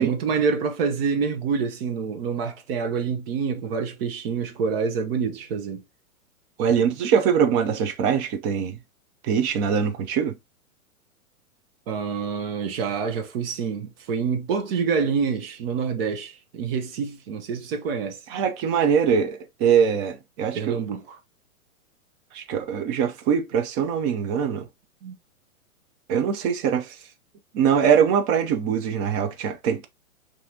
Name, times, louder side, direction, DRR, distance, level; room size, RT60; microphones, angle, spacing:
voice 1, 0.0-5.8 11.9-18.2 20.5-21.2 25.0-25.1, right 5 dB, 40° right, 0.9 m, -27 dB
voice 2, 6.6-8.8 9.2-10.3 18.3-20.8 22.3-24.7 26.1-27.0 27.5-29.9, right 7 dB, 25° right, 0.5 m, -22 dB
5.6 x 2.7 x 2.7 m
hypercardioid pair, 120°, 43 cm